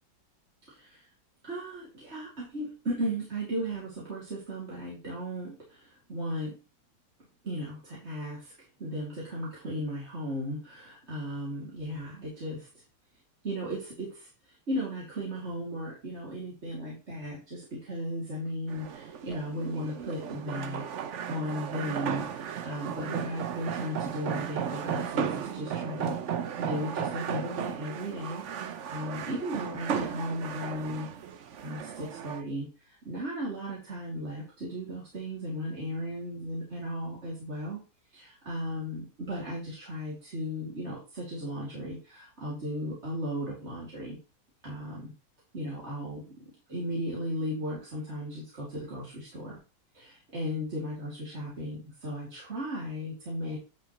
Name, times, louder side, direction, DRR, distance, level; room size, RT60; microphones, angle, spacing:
voice 1, 0.7-1.1 1.4-6.6 7.4-8.5 8.8-12.7 13.4-20.9 21.3-26.1 26.6-31.1 31.6-37.8 38.1-44.2 44.6-45.1 45.5-49.6 49.9-53.6, equal, 35° right, -6 dB, 2.9 m, -36 dB
sound 1, 18.7-32.4, right 8 dB, 60° right, 0.7 m, -35 dB
10.0 x 5.9 x 3.1 m, 0.31 s
omnidirectional pair, 2.0 m